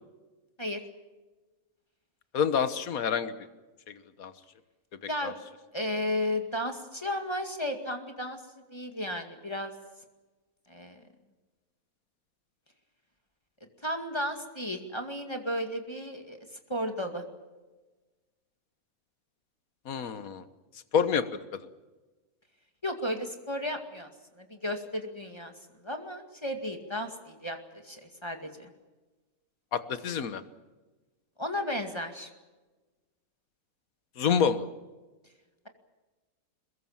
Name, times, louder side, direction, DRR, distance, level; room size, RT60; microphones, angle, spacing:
voice 1, 2.3-3.5 4.2-4.3 5.2-5.3 19.9-20.4 20.9-21.7 29.7-30.4 34.2-34.6, left 7 dB, 75° left, 12 dB, 1.6 m, -27 dB
voice 2, 5.7-8.4 8.7-9.7 10.7-11.0 13.8-16.4 16.7-17.2 22.8-24.1 24.4-25.5 25.8-28.7 31.4-32.3, left 1 dB, 20° left, 5 dB, 2.2 m, -34 dB
22.5 x 21.5 x 7.3 m, 1.2 s
omnidirectional pair, 1.5 m